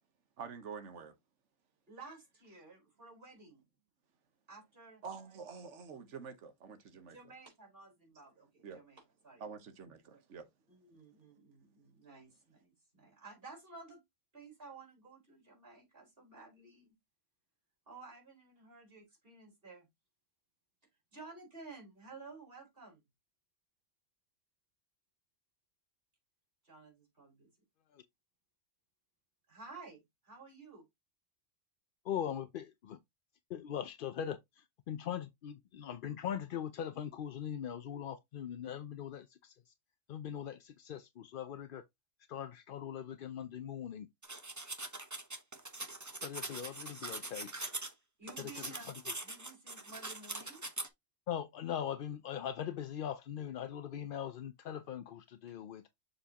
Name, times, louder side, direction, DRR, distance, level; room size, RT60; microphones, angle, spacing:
voice 1, 0.4-1.1 5.0-7.2 8.6-8.8 9.4-10.5, right 5 dB, 70° right, 1.4 m, -47 dB
voice 2, 1.9-3.6 4.5-5.0 7.1-9.4 10.0-10.2 10.7-14.0 14.3-16.9 17.9-19.9 21.1-23.0 26.6-27.5 29.5-30.9 48.2-48.9 49.2-50.7 54.2-54.3, right 3 dB, 50° right, 4.4 m, -53 dB
voice 3, 32.0-33.0 33.5-39.7 40.1-41.8 42.3-44.1 46.2-47.5 48.4-48.7 51.3-55.8, left 9 dB, 60° left, 0.6 m, -41 dB
sound 1, 44.2-47.9 48.3-50.9, right 2 dB, 15° right, 0.8 m, -42 dB
7.0 x 4.9 x 2.9 m
omnidirectional pair, 1.3 m